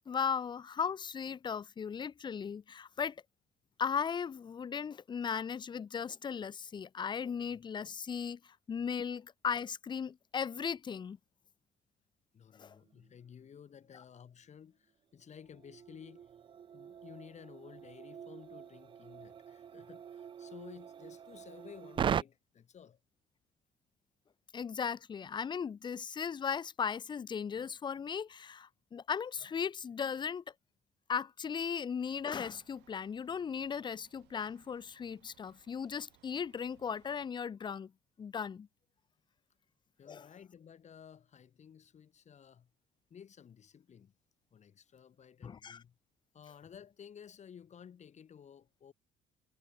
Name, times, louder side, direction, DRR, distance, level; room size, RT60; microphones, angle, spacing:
voice 1, 0.1-3.2 3.8-11.2 12.6-12.8 24.5-30.4 31.1-37.9 38.2-38.7 40.1-40.2 45.4-45.8, left 7 dB, 25° left, 0.5 m, -37 dB
voice 2, 12.3-16.3 16.7-23.0 40.0-42.7 43.1-44.1 44.5-46.0 46.3-48.9, left 8 dB, 45° left, 3.4 m, -54 dB
sound 1, 12.9-13.1 13.5-13.6 15.2-22.2, right 8 dB, 30° right, 0.3 m, -41 dB
sound 2, 32.0-37.3, right 20 dB, 90° right, 2.1 m, -68 dB
cardioid pair, 110°, 17 cm